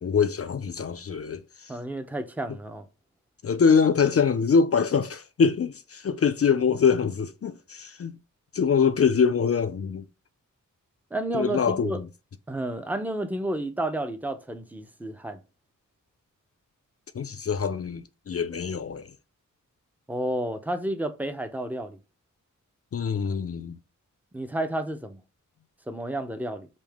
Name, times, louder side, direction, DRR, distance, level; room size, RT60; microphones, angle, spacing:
voice 1, 0.0-1.7 3.4-8.2 8.5-10.1 11.3-12.1 17.1-19.1 22.9-23.8, left 6 dB, 45° left, 0.5 m, -24 dB
voice 2, 1.7-2.9 11.1-12.0 12.5-15.4 20.1-22.0 24.3-25.2 25.9-26.7, right 1 dB, 5° right, 0.6 m, -31 dB
5.3 x 2.8 x 3.5 m
wide cardioid pair, 110°, 32 cm